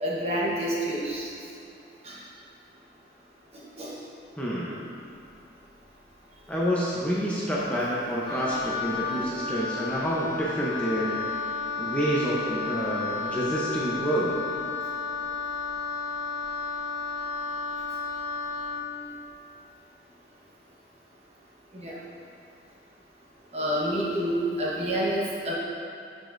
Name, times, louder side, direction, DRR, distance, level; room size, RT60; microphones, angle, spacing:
voice 1, 0.0-1.3 2.0-2.1 3.8-3.9 21.7-22.0 23.5-25.5, right 1 dB, 35° right, -5 dB, 1.2 m, -28 dB
voice 2, 4.4-4.8 6.5-11.2 11.8-14.4, equal, 5° left, -7 dB, 0.8 m, -28 dB
Wind instrument woodwind instrument, 8.2-18.9, left 4 dB, 25° left, 1.5 m, -32 dB
11.5 x 5.1 x 2.6 m, 2.7 s
head